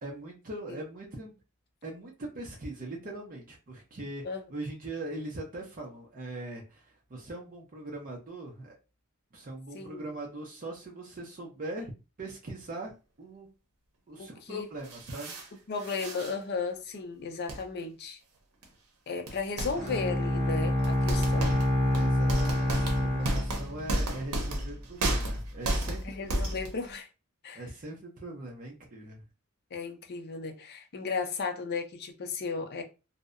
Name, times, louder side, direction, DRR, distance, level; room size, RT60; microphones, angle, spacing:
voice 1, 0.0-1.3 1.8-4.2 4.5-8.7 9.3-11.9 12.2-12.9 13.2-13.5 14.1-15.6 22.0-26.3 27.5-29.2, right 2 dB, 40° right, 0.5 m, -41 dB
voice 2, 14.2-14.7 15.7-18.2 19.1-21.6 26.0-27.1 27.4-27.6 29.7-32.8, left 4 dB, 45° left, 0.4 m, -35 dB
sound 1, 14.8-15.5 15.8-16.3 17.5-17.6 18.6-18.7 19.3-20.0 20.8-26.9, right 1 dB, 90° right, 0.7 m, -32 dB
Bowed string instrument, 19.7-24.2, left 1 dB, 5° right, 1.4 m, -27 dB
2.6 x 2.0 x 2.4 m
head